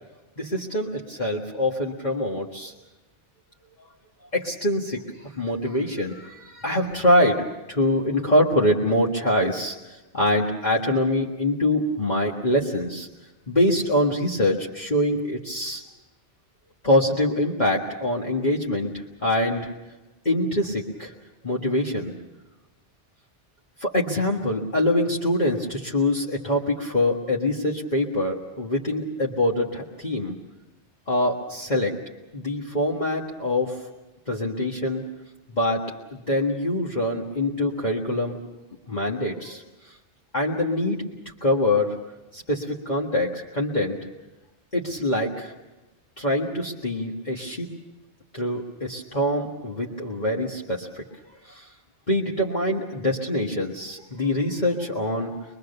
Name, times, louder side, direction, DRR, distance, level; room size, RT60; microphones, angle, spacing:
voice 1, 0.4-2.7 4.3-13.1 13.5-15.8 16.8-19.7 20.3-21.1 21.4-22.1 23.8-30.4 31.1-31.9 32.3-33.8 34.3-35.0 35.5-35.9 36.3-38.4 38.9-39.6 40.3-41.0 41.4-41.9 42.3-44.0 44.7-45.5 46.2-47.7 48.3-51.0 51.4-51.7 52.1-55.4, left 1 dB, 40° left, -3 dB, 1.8 m, -24 dB
23.5 x 23.0 x 6.8 m, 1.1 s
omnidirectional pair, 1.2 m